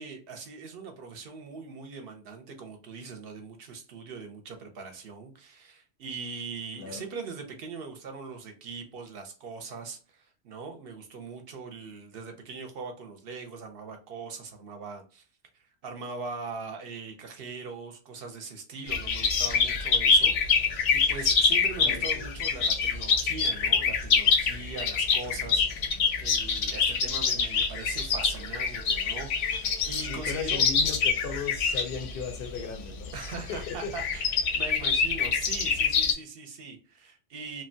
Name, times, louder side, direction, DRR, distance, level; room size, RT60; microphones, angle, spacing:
voice 1, 0.0-15.2 15.8-30.6 33.1-34.3 34.5-37.6, right 4 dB, 60° right, 0.7 m, -41 dB
sound 1, 18.9-36.1, left 5 dB, 80° left, 0.9 m, -26 dB
voice 2, 21.8-22.2 30.0-33.1 33.5-33.9, left 6 dB, 60° left, 0.6 m, -36 dB
2.9 x 2.2 x 2.6 m
omnidirectional pair, 1.2 m